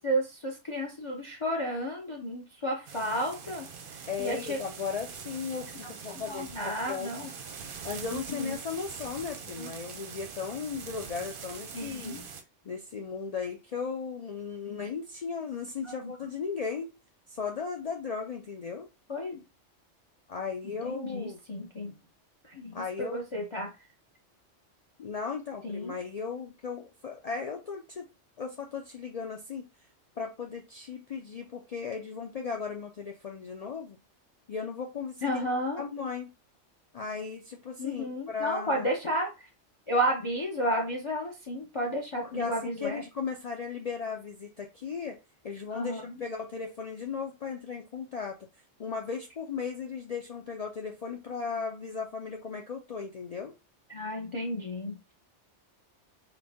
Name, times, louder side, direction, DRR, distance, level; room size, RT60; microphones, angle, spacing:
voice 1, 0.0-3.7 4.2-4.6 6.3-7.3 8.1-8.6 9.6-9.7 11.7-12.3 14.7-14.9 15.8-16.1 19.1-19.4 20.6-21.9 22.4-23.7 25.6-26.0 35.2-35.8 37.8-39.5 39.9-43.0 45.7-46.2 53.9-55.1, equal, 35° left, 0 dB, 0.6 m, -32 dB
sound 1, 2.9-12.4, right 6 dB, 55° right, 0.7 m, -43 dB
voice 2, 4.1-7.1 7.8-12.1 12.6-16.9 17.3-18.9 20.3-21.4 22.7-23.2 25.0-28.1 28.4-29.7 30.2-34.0 34.5-35.4 35.8-36.3 36.9-38.9 42.2-45.2 45.4-48.4 48.8-53.5, left 5 dB, 85° left, 2 dB, 0.3 m, -36 dB
3.9 x 2.1 x 3.4 m, 0.27 s
omnidirectional pair, 1.3 m